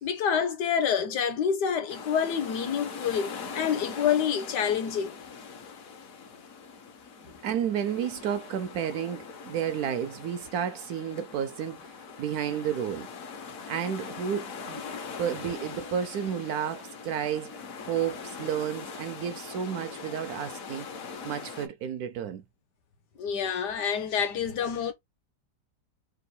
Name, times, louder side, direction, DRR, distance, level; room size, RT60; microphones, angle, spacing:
voice 1, 0.0-5.2 7.2-7.3 23.2-24.9, left 7 dB, 75° left, 1.5 m, -27 dB
sound 1, 1.9-21.7, left 5 dB, 60° left, 1.2 m, -42 dB
voice 2, 7.4-13.1 13.7-14.8 15.2-20.9 21.2-22.4, right 8 dB, 70° right, 1.0 m, -32 dB
3.6 x 2.4 x 4.2 m
omnidirectional pair, 1.8 m